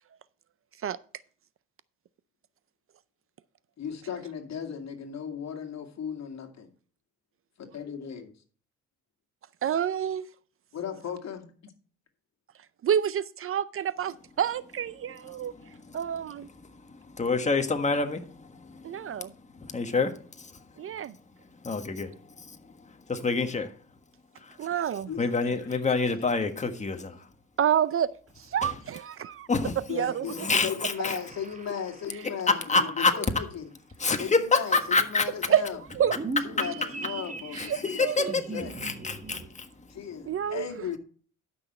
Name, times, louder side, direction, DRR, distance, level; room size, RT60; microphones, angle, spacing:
voice 1, 3.8-6.7 7.6-8.3 10.7-11.4 25.1-25.8 29.9-33.7 34.2-35.8 36.4-38.7 39.9-41.0, left 7 dB, 60° left, 2.2 m, -36 dB
voice 2, 9.6-10.3 12.8-15.5 15.9-16.5 18.8-19.3 20.8-21.1 24.6-25.1 27.6-28.1 28.5-29.5 29.9-30.2 35.5-35.6 36.0-36.1 37.7-38.3 40.3-40.7, right 9 dB, 45° right, 0.5 m, -28 dB
voice 3, 15.3-16.0 16.9-19.2 19.6-20.6 21.6-23.7 24.4-24.6 25.2-27.3 28.6-28.7 29.5-29.8 30.4-31.2 32.5-33.1 34.0-35.3 37.6-39.9, left 4 dB, 25° left, 1.5 m, -28 dB
sound 1, 30.9-32.5 35.9-39.5, right 3 dB, 25° right, 1.4 m, -39 dB
12.0 x 6.2 x 4.3 m
cardioid pair, 90°, 30 cm